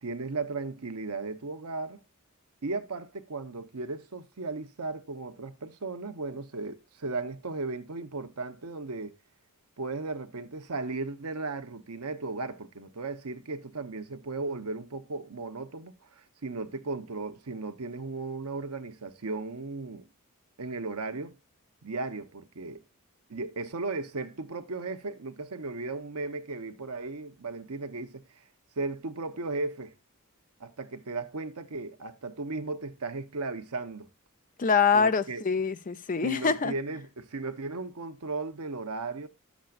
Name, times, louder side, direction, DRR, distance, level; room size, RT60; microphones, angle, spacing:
voice 1, 0.0-2.0 2.6-9.1 9.8-20.1 20.6-21.4 21.8-22.8 23.3-28.2 28.8-29.9 30.6-34.1 34.9-35.4 36.2-39.3, right 3 dB, 90° right, 0.9 m, -36 dB
voice 2, 34.6-36.7, left 5 dB, 35° left, 0.5 m, -25 dB
11.5 x 7.2 x 2.4 m
head